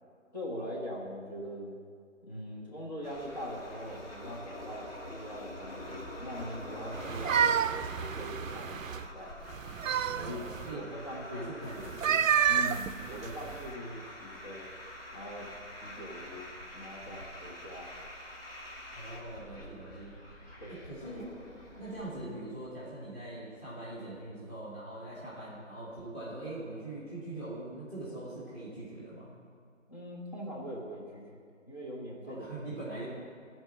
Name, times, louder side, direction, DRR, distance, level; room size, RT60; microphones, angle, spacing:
voice 1, 0.3-1.8 2.2-9.3 10.2-10.4 10.7-11.9 12.5-14.7 15.1-15.5 15.8-17.9 20.6-20.8 29.9-31.4 31.7-32.5, equal, 30° left, -4 dB, 1.3 m, -42 dB
sound 1, 3.0-22.2, left 1 dB, 45° left, 2.2 m, -46 dB
sound 2, 7.0-9.0 9.5-10.7 11.8-13.7, right 8 dB, 75° right, 0.5 m, -29 dB
voice 2, 10.1-10.8 11.3-12.1 18.9-20.1 20.7-21.3 21.8-29.3 32.2-33.0, right 2 dB, 10° left, -8 dB, 1.4 m, -42 dB
12.5 x 4.5 x 7.1 m, 2.2 s
figure-of-eight pair, 165°, 39 cm